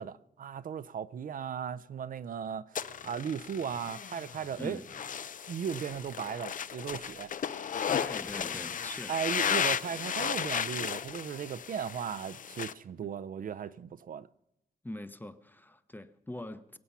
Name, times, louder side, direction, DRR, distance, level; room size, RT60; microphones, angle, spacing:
voice 1, 0.0-4.8 5.5-7.3 9.1-14.3, right 7 dB, 65° right, 0.5 m, -37 dB
sound 1, 2.8-12.7, left 7 dB, 60° left, 0.6 m, -35 dB
voice 2, 4.6-4.9 7.9-9.2 13.0-13.1 14.8-16.8, left 1 dB, 10° left, 0.8 m, -42 dB
22.5 x 8.5 x 5.7 m
wide cardioid pair, 120°, 16 cm